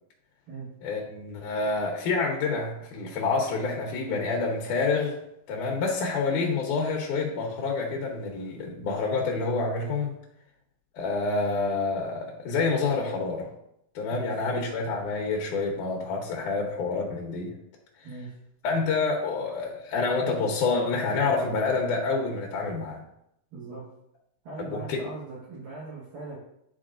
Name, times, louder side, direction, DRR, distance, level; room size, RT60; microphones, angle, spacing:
voice 1, 0.8-5.2 5.5-10.1 10.9-13.5 14.0-17.5 18.6-23.0 24.6-25.1, left 4 dB, 70° left, -1 dB, 2.0 m, -28 dB
voice 2, 18.0-18.4 23.5-23.9 24.4-26.4, right 3 dB, 65° right, -7 dB, 3.0 m, -40 dB
10.5 x 4.7 x 2.5 m, 0.79 s
omnidirectional pair, 4.7 m